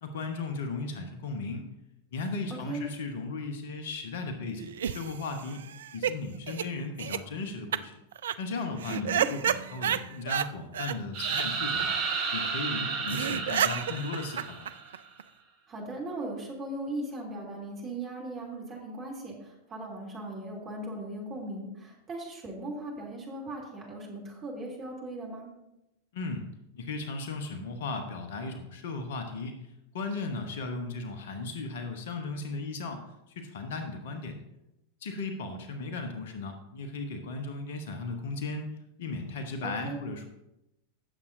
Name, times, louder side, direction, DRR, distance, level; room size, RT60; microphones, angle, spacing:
voice 1, 0.0-1.6 2.1-5.6 5.9-7.9 8.4-12.0 12.3-14.7 26.1-26.5 26.7-29.6 29.9-34.4 35.0-38.7 39.0-40.3, left 3 dB, 55° left, 6 dB, 1.1 m, -36 dB
voice 2, 2.5-2.8 8.9-9.3 15.7-25.5 39.6-40.0, right 1 dB, 30° right, -2 dB, 3.0 m, -38 dB
sound 1, 4.6-6.1 6.5-6.6 7.0-7.2 7.7-7.8 8.1-8.4 8.8-10.5 10.7-11.0 11.3-11.4 11.8-11.9 12.1-12.2 12.4-12.5 12.8-12.9 13.1-15.2, right 9 dB, 60° right, 0.3 m, -30 dB
sound 2, 11.1-15.0, right 5 dB, 45° right, 1.6 m, -32 dB
16.0 x 7.1 x 2.7 m, 0.89 s
figure-of-eight pair, 90°, 0 cm